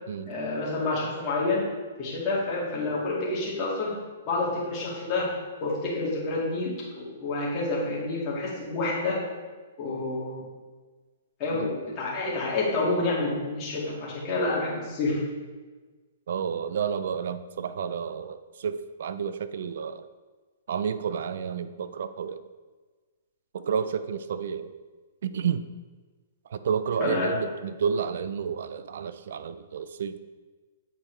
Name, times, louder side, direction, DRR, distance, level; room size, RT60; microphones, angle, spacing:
voice 1, 0.3-1.6 2.0-3.9 4.3-5.3 5.6-9.2 9.8-10.4 11.4-15.2 27.0-27.3, left 2 dB, 25° left, -6 dB, 2.0 m, -28 dB
voice 2, 16.3-20.1 20.7-22.4 23.5-24.7 25.2-25.7 26.5-30.2, right 7 dB, 65° right, 12 dB, 0.4 m, -30 dB
8.0 x 4.3 x 3.3 m, 1.4 s
hypercardioid pair, 155°, 0 cm